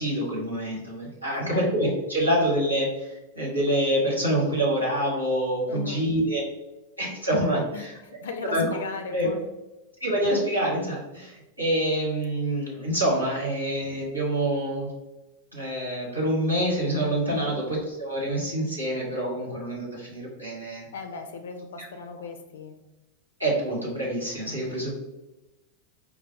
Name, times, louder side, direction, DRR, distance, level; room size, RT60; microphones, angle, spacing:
voice 1, 0.0-6.4 7.0-8.0 8.5-8.6 9.1-9.3 10.0-14.9 15.5-20.9 21.8-21.9 23.4-25.0, right 1 dB, 90° right, -4 dB, 1.4 m, -26 dB
voice 2, 1.3-1.7 5.7-6.1 7.7-9.5 17.3-17.6 20.9-22.8, left 4 dB, 60° left, 7 dB, 0.3 m, -37 dB
4.8 x 2.3 x 2.7 m, 1.0 s
figure-of-eight pair, 90°, 0 cm